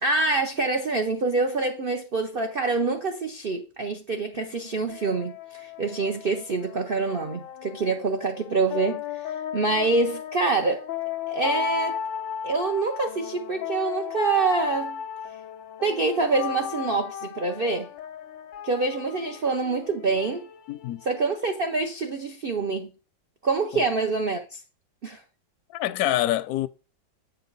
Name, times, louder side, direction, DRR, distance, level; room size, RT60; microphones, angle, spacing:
voice 1, 0.0-10.9 11.3-12.0 12.4-15.0 15.8-17.9 18.6-20.5 21.1-22.9 23.4-24.6 25.0-25.2, right 3 dB, 85° right, 0.4 m, -26 dB
sound 1, 4.3-21.8, left 8 dB, 90° left, 1.4 m, -36 dB
voice 2, 20.7-21.0 23.7-23.8 25.7-26.7, left 14 dB, 70° left, 0.9 m, -26 dB
8.0 x 5.5 x 3.9 m
omnidirectional pair, 2.0 m